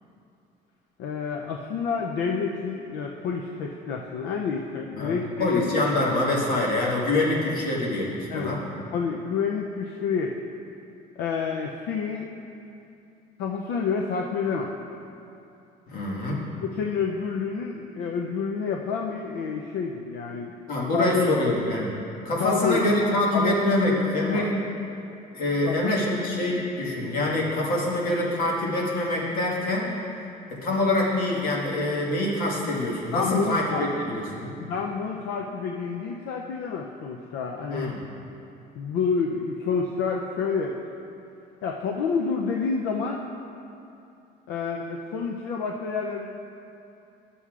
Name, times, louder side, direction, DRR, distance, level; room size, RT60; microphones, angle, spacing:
voice 1, 1.0-5.7 8.3-8.5 8.9-10.4 11.2-12.3 13.4-14.7 16.6-20.6 20.9-21.3 22.4-22.8 23.3-23.6 23.9-24.0 24.3-24.4 25.7-25.8 33.1-33.8 34.6-37.9 38.8-40.8 41.6-43.2 44.5-46.3, left 5 dB, 80° left, 1 dB, 0.5 m, -28 dB
voice 2, 5.0-8.6 15.9-16.4 20.7-21.9 22.2-24.5 25.3-30.0 30.5-34.5 37.7-38.0, left 1 dB, 60° left, -4 dB, 1.6 m, -25 dB
12.5 x 6.9 x 2.4 m, 2.7 s
cardioid pair, 150°, 17 cm